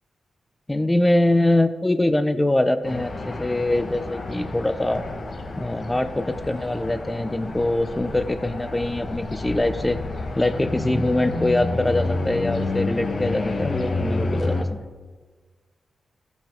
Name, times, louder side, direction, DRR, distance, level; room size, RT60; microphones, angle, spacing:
voice 1, 0.7-5.0 5.6-10.0 10.4-14.8, left 1 dB, 15° left, 10 dB, 0.7 m, -23 dB
sound 1, 2.8-14.6, left 2 dB, 55° left, 1.3 m, -29 dB
14.0 x 5.6 x 4.5 m, 1.4 s
cardioid pair, 60°, 0 cm